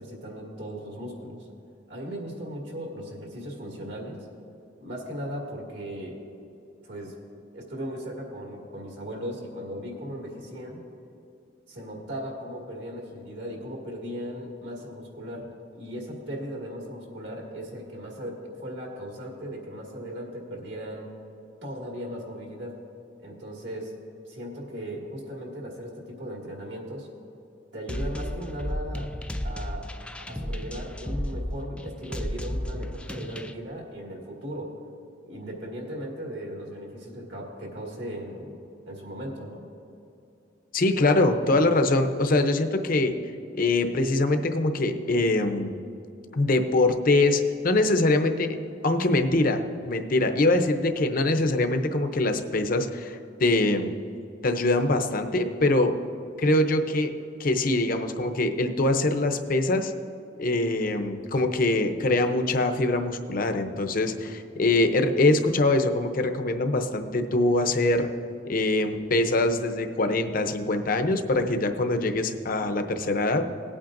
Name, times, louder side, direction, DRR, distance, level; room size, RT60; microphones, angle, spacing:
voice 1, 0.0-1.5 1.9-4.3 4.8-6.2 6.8-7.1 7.5-10.8 11.7-15.5 15.7-21.1 21.6-22.8 23.2-23.9 24.3-27.1 27.7-29.1 29.4-29.9 30.3-34.8 35.2-38.6 38.9-39.7, equal, 70° right, -1 dB, 2.2 m, -37 dB
sound 1, 27.9-33.5, left 1 dB, 5° left, 0.3 m, -33 dB
voice 2, 40.7-43.2 43.5-45.8 46.3-48.6 48.8-53.9 54.4-56.0 56.4-57.1 57.4-59.9 60.4-68.1 68.4-73.5, left 2 dB, 50° left, 7 dB, 0.7 m, -23 dB
18.5 x 8.7 x 2.6 m, 2.7 s
head